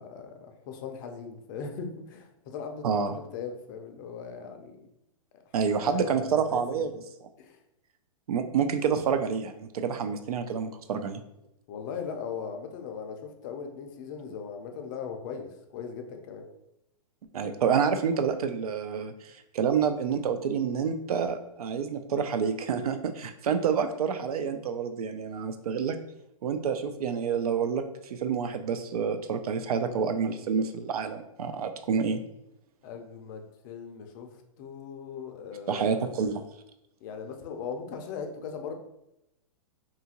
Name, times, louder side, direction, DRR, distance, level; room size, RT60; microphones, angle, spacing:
voice 1, 0.0-4.9 5.6-6.6 7.4-7.6 11.7-16.5 32.8-36.1 37.0-38.7, left 6 dB, 35° left, 4 dB, 0.4 m, -39 dB
voice 2, 2.8-3.1 5.5-6.9 8.3-11.2 17.3-26.0 26.4-27.8 28.1-32.2 35.7-36.4, right 6 dB, 90° right, 7 dB, 0.4 m, -28 dB
2.7 x 2.4 x 2.8 m, 0.84 s
hypercardioid pair, 145°, 18 cm